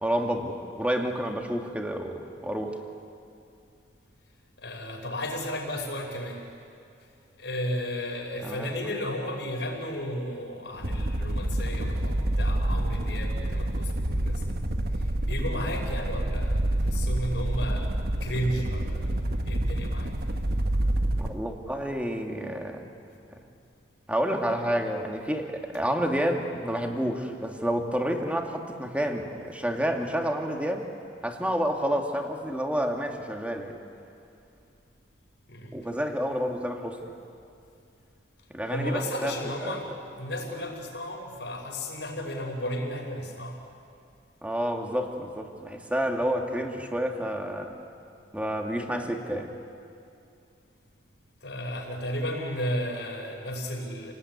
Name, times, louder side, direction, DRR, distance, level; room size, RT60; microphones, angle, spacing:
voice 1, 0.0-2.8 8.4-8.7 21.2-22.8 24.1-30.9 31.2-33.8 35.7-37.1 38.5-39.7 44.4-47.7 48.3-49.5, equal, 10° right, 2 dB, 2.3 m, -29 dB
voice 2, 4.6-6.5 7.4-14.6 14.9-17.9 18.2-20.4 35.5-35.8 38.7-43.7 51.4-54.1, equal, 80° left, 0 dB, 5.6 m, -34 dB
sound 1, 10.7-21.4, right 1 dB, 60° right, 1.4 m, -28 dB
29.0 x 19.5 x 9.7 m, 2.5 s
head